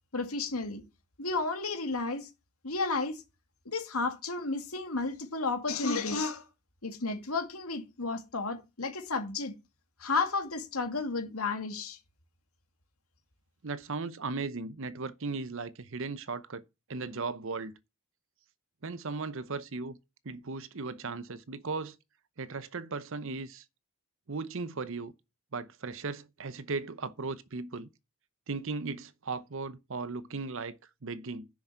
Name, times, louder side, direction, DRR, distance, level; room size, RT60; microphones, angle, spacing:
voice 1, 0.1-0.8 1.2-2.3 2.6-3.2 3.7-6.5 6.8-9.5 10.0-12.0, left 3 dB, 85° left, 2.2 m, -32 dB
voice 2, 13.6-16.6 16.9-17.7 18.8-20.0 20.2-22.0 22.4-23.6 24.3-25.1 25.5-27.9 28.5-31.5, right 4 dB, 65° right, 0.8 m, -37 dB
10.5 x 6.4 x 5.6 m
head